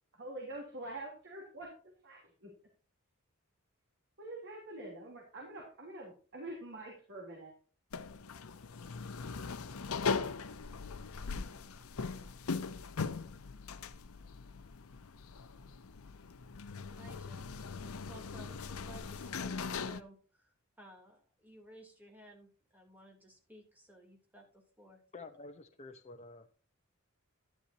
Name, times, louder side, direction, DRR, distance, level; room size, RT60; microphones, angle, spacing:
voice 1, 0.1-1.7 2.0-2.5 4.2-7.5, right 2 dB, 55° right, 0 dB, 3.2 m, -45 dB
sound 1, 7.9-20.0, left 5 dB, 80° left, 0.7 m, -40 dB
voice 2, 16.8-25.0, equal, 10° right, 1 dB, 3.0 m, -56 dB
voice 3, 25.1-26.6, left 3 dB, 30° left, 4 dB, 0.8 m, -50 dB
11.5 x 11.0 x 2.7 m, 0.38 s
head